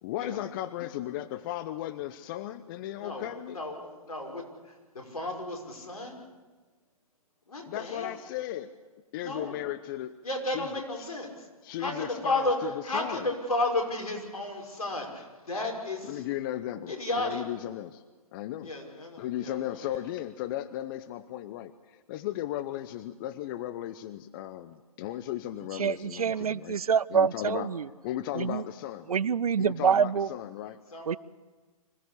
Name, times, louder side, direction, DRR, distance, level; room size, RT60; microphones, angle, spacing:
voice 1, 0.0-3.6 7.7-8.7 9.1-10.2 10.5-10.8 11.6-13.3 16.0-18.0 18.3-18.7 19.2-26.8 27.1-27.7 28.0-29.1 29.6-30.8, left 13 dB, 35° left, 14 dB, 0.8 m, -36 dB
voice 2, 3.0-6.2 7.5-8.2 9.1-9.6 10.2-11.5 11.8-16.2 16.9-17.4 18.6-20.0 30.9-31.1, left 2 dB, 75° left, 2 dB, 5.7 m, -33 dB
voice 3, 25.8-27.8 28.4-28.6 29.1-30.3 31.1-31.2, right 7 dB, 75° right, 21 dB, 0.7 m, -26 dB
25.5 x 17.0 x 8.3 m, 1.4 s
figure-of-eight pair, 130°, 19 cm